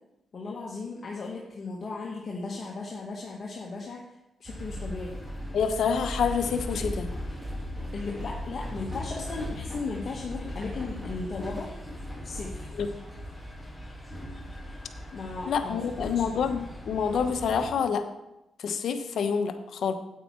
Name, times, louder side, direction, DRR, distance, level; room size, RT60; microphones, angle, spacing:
voice 1, 0.3-4.0 4.4-5.2 7.9-11.7 12.2-12.7 15.1-16.2, left 3 dB, 50° left, -3 dB, 1.6 m, -36 dB
sound 1, 4.5-17.7, equal, 5° right, 2.1 m, -38 dB
voice 2, 5.5-7.1 12.8-12.9 15.5-18.0 18.6-19.9, left 6 dB, 70° left, 7 dB, 1.0 m, -27 dB
9.1 x 8.5 x 4.5 m, 0.90 s
cardioid pair, 95°, 0 cm